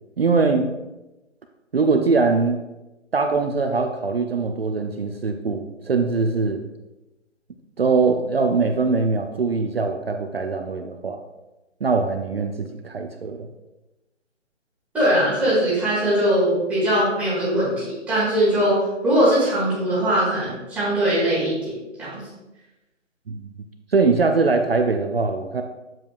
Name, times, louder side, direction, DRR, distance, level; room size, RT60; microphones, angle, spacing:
voice 1, 0.2-0.7 1.7-2.6 3.1-6.6 7.8-11.2 11.8-13.5 23.3-23.5 23.9-25.6, right 4 dB, 50° right, 5 dB, 0.6 m, -22 dB
voice 2, 14.9-18.8 19.0-21.7 22.0-22.2, right 1 dB, 5° right, -11 dB, 1.7 m, -21 dB
7.5 x 7.3 x 2.4 m, 1.0 s
figure-of-eight pair, 155°, 38 cm